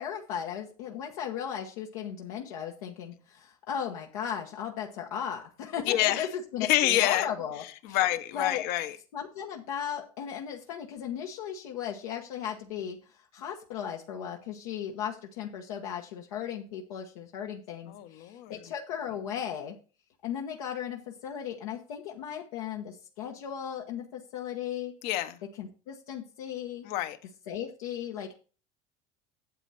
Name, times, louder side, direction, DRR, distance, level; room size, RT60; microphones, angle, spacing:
voice 1, 0.0-8.0 8.3-8.6 9.1-19.8 20.2-24.9 25.6-26.8 27.5-28.4, left 8 dB, 85° left, 1 dB, 1.2 m, -36 dB
voice 2, 5.9-6.3 6.6-7.3 7.8-9.0 17.9-18.6 25.0-25.4 26.9-27.2, left 14 dB, 65° left, 11 dB, 1.0 m, -27 dB
9.0 x 7.5 x 4.1 m, 0.36 s
supercardioid pair, 100°, 18 cm